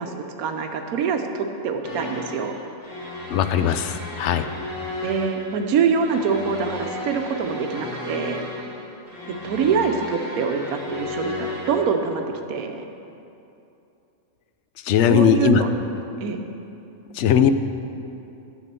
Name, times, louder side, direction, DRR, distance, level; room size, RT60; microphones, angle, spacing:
voice 1, 0.0-2.6 5.0-8.4 9.4-12.2 12.5-12.8 15.0-15.7 16.2-16.4, right 6 dB, 85° right, 5 dB, 1.2 m, -24 dB
sound 1, 1.8-11.8, left 2 dB, 25° left, 1.7 m, -34 dB
voice 2, 3.3-4.4 14.8-15.6 17.1-17.5, left 9 dB, 65° left, 10 dB, 0.8 m, -19 dB
10.0 x 7.3 x 6.7 m, 2.7 s
omnidirectional pair, 1.5 m